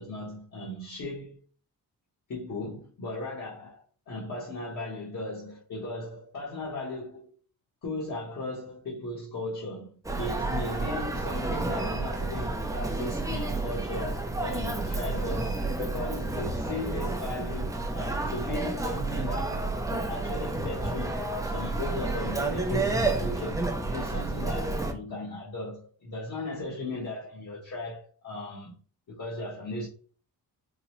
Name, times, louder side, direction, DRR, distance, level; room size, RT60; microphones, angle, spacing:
voice 1, 0.0-1.4 2.3-7.3 7.8-9.9 10.1-21.2 21.4-28.8 29.1-29.9, left 2 dB, 50° left, 1.2 m, -37 dB
Human voice, 10.0-24.9, right 2 dB, 10° right, 0.5 m, -30 dB
3.8 x 2.2 x 3.0 m
cardioid pair, 85°, 39 cm